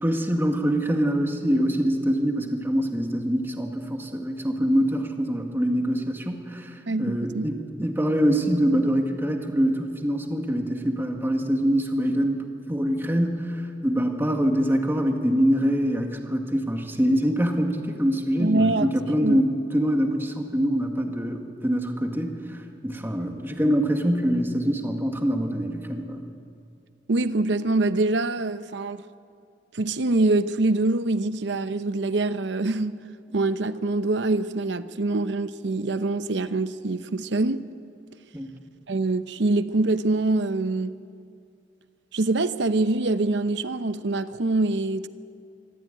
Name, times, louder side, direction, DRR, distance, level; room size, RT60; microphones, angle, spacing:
voice 1, 0.0-26.2 38.3-38.5, equal, 15° right, 2.0 m, -24 dB
voice 2, 6.9-7.5 18.4-18.9 19.2-19.4 27.1-29.0 29.7-33.0 33.3-37.6 38.9-40.9 42.1-45.1, right 2 dB, 70° right, 0.8 m, -24 dB
24.5 x 14.0 x 9.1 m
head